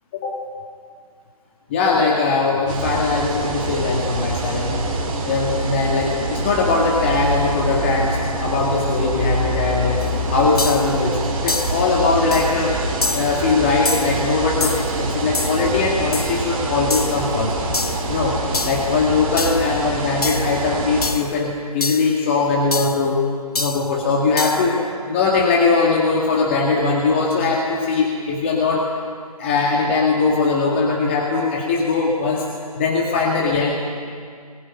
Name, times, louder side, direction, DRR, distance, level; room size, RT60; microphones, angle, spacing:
voice 1, 1.7-10.1 10.3-12.8 13.1-17.5 18.1-23.2 23.6-29.0 29.4-32.5 32.8-33.7, left 4 dB, 20° left, -2 dB, 2.1 m, -20 dB
sound 1, 2.7-21.1, right 2 dB, 15° right, 3.3 m, -25 dB
sound 2, 10.0-10.1 10.6-10.9 11.5-11.8 12.3-12.6 13.0-13.4 13.8-14.2 14.6-14.9 15.3-15.6 16.1-16.4 16.9-17.2 17.7-18.1 18.5-18.9 19.4-19.7 20.2-20.6 21.0-21.3 21.8-22.1 22.7-23.0 23.6-23.9 24.4-24.7, left 3 dB, 75° left, 1.6 m, -26 dB
21.5 x 19.5 x 9.9 m, 2.1 s
figure-of-eight pair, 165°, 20 cm